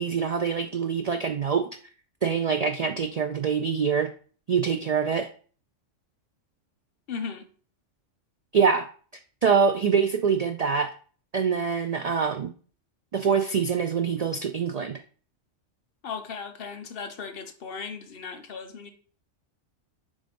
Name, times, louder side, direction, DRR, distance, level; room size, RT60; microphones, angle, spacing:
voice 1, 0.0-1.7 2.2-4.1 4.5-5.3 8.5-8.9 9.4-10.9 11.3-12.5 13.1-15.0, right 6 dB, 80° right, 6 dB, 0.3 m, -24 dB
voice 2, 7.1-7.5 16.0-18.9, left 5 dB, 55° left, 7 dB, 0.9 m, -36 dB
7.1 x 2.6 x 5.2 m, 0.42 s
omnidirectional pair, 1.3 m